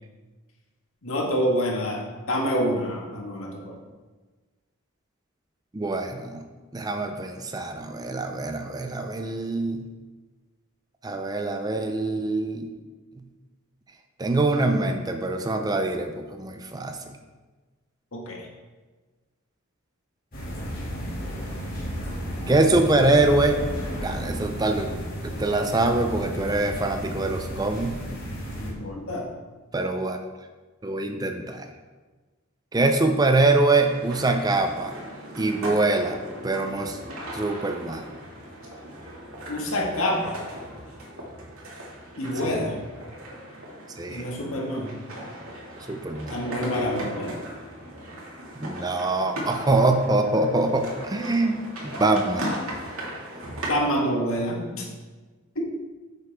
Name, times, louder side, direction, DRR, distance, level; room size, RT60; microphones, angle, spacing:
voice 1, 1.0-3.8 18.1-18.5 28.6-29.3 39.5-40.4 42.2-42.8 44.1-44.9 46.3-47.4 53.6-54.9 55.5-55.7, equal, 75° left, -1 dB, 1.7 m, -27 dB
voice 2, 5.7-6.4 6.7-9.8 11.0-12.7 14.2-17.0 22.5-23.6 24.0-24.9 25.2-28.0 29.7-30.2 30.8-31.7 32.7-34.9 35.4-36.2 36.4-37.0 37.3-38.1 42.4-42.6 44.0-44.2 45.9-46.4 48.6-52.6, right 2 dB, 20° right, 6 dB, 0.5 m, -24 dB
sound 1, 20.3-28.7, equal, 40° left, 2.4 m, -33 dB
sound 2, 33.8-53.7, equal, 80° right, 2.1 m, -38 dB
8.9 x 6.8 x 3.5 m, 1.3 s
head